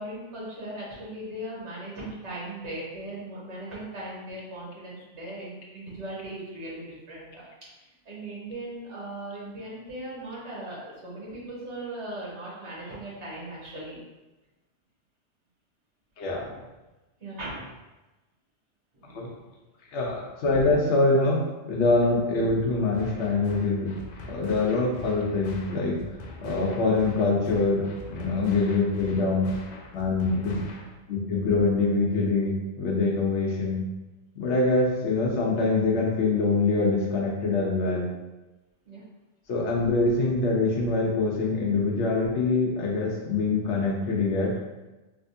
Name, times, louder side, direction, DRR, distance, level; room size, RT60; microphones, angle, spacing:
voice 1, 0.0-7.4 8.0-14.0 16.3-16.6 17.2-17.7 18.9-19.4 20.1-20.2 30.3-30.4 38.8-39.0, right 1 dB, 80° right, -7 dB, 1.5 m, -38 dB
voice 2, 19.9-21.4 21.7-23.9 24.3-26.0 26.4-29.5 29.9-30.6 31.1-33.8 34.4-38.1 39.5-44.6, left 3 dB, 80° left, -1 dB, 1.0 m, -24 dB
sound 1, 22.9-30.9, left 3 dB, 60° left, 0.5 m, -43 dB
3.4 x 2.8 x 2.6 m, 1.1 s
omnidirectional pair, 1.2 m